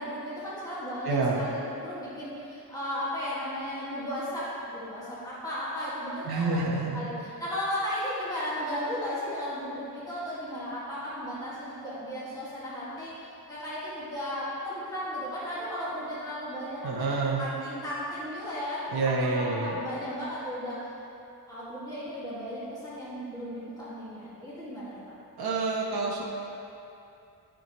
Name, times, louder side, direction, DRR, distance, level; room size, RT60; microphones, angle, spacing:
voice 1, 0.0-6.6 6.9-7.1 7.4-13.1 13.5-20.8 21.5-25.1, equal, 10° left, -10 dB, 1.8 m, -35 dB
voice 2, 1.0-1.5 6.2-7.0 16.8-17.5 18.9-19.8 25.4-26.2, right 3 dB, 70° right, -2 dB, 1.0 m, -28 dB
13.5 x 5.1 x 3.0 m, 2.7 s
wide cardioid pair, 155°, 40 cm